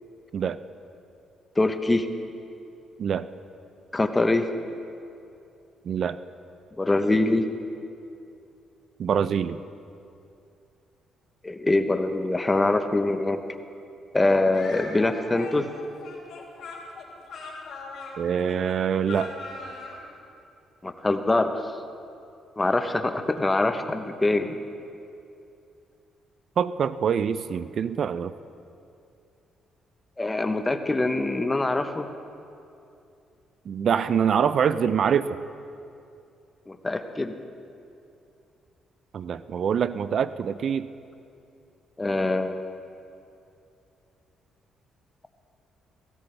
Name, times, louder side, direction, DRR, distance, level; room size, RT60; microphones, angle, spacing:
voice 1, 1.6-2.1 3.9-4.5 6.8-7.5 11.4-13.4 14.1-15.7 20.8-21.5 22.6-24.6 30.2-32.1 36.7-37.3 42.0-42.6, left 2 dB, 20° left, 8 dB, 0.8 m, -24 dB
voice 2, 5.9-6.2 9.0-9.6 18.2-19.3 26.6-28.3 33.7-35.4 39.1-40.9, right 7 dB, 60° right, 14 dB, 0.4 m, -25 dB
Speech, 14.5-20.0, left 3 dB, 65° left, 3.5 m, -40 dB
17.5 x 15.5 x 3.3 m, 2.6 s
cardioid pair, 90°, 0 cm